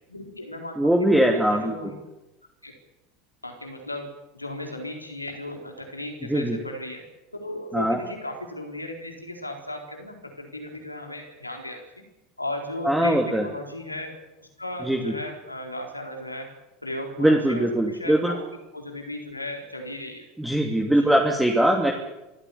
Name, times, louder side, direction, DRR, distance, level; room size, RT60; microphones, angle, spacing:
voice 1, 0.1-2.0 2.6-2.7 3.4-7.0 7.3-12.0 12.4-14.1 14.6-16.5 16.8-18.4 18.7-20.3 20.9-21.1, left 1 dB, 90° left, 3 dB, 4.1 m, -35 dB
voice 2, 0.8-1.7 6.3-6.6 7.7-8.0 12.8-13.5 14.8-15.1 17.2-18.3 20.4-21.9, right 1 dB, 5° right, 1 dB, 2.9 m, -21 dB
26.0 x 15.0 x 8.5 m, 1.0 s
figure-of-eight pair, 75°, 0 cm